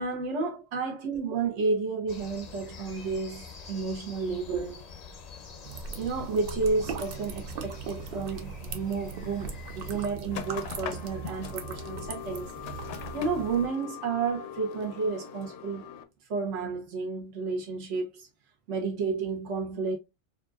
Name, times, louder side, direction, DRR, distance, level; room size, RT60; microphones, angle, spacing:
voice 1, 0.0-4.8 6.0-12.5 13.1-15.8 16.3-18.3 18.7-20.0, right 4 dB, 70° right, 1.3 m, -31 dB
sound 1, 2.1-10.1, left 5 dB, 45° left, 0.6 m, -46 dB
sound 2, 5.6-13.7, right 5 dB, 55° right, 0.7 m, -39 dB
sound 3, 10.3-16.0, left 9 dB, 75° left, 0.9 m, -41 dB
4.3 x 2.5 x 2.3 m
omnidirectional pair, 1.3 m